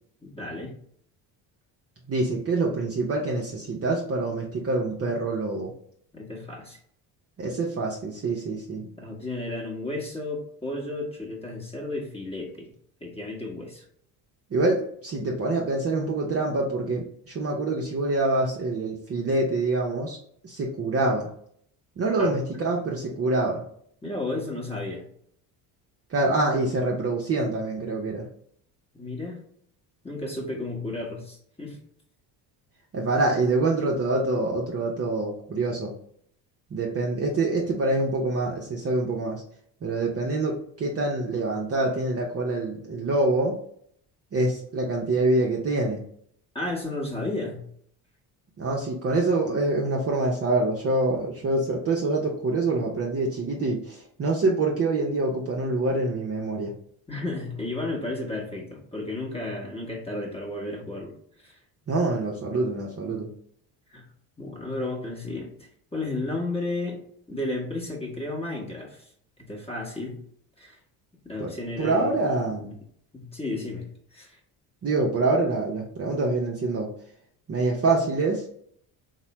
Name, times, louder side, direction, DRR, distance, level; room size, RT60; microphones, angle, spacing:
voice 1, 0.2-0.7 6.1-6.8 8.8-12.7 13.0-13.8 22.2-22.3 24.0-25.0 28.9-29.4 30.0-31.8 46.5-47.6 57.1-61.6 63.9-64.0 64.4-67.0 67.3-69.1 69.4-70.2 70.6-70.8 71.2-72.2 73.1-73.8 74.1-74.4, left 2 dB, 10° left, -1 dB, 1.0 m, -33 dB
voice 2, 2.1-5.7 7.4-8.8 14.5-20.2 20.4-21.3 22.0-23.6 26.1-28.2 32.9-35.9 36.7-39.4 39.8-43.6 44.3-46.0 48.6-56.7 61.9-63.3 71.4-71.5 71.8-72.8 74.8-76.9 77.5-78.4, right 2 dB, 30° right, -2 dB, 0.6 m, -25 dB
3.1 x 2.1 x 2.9 m, 0.64 s
supercardioid pair, 75°, 48 cm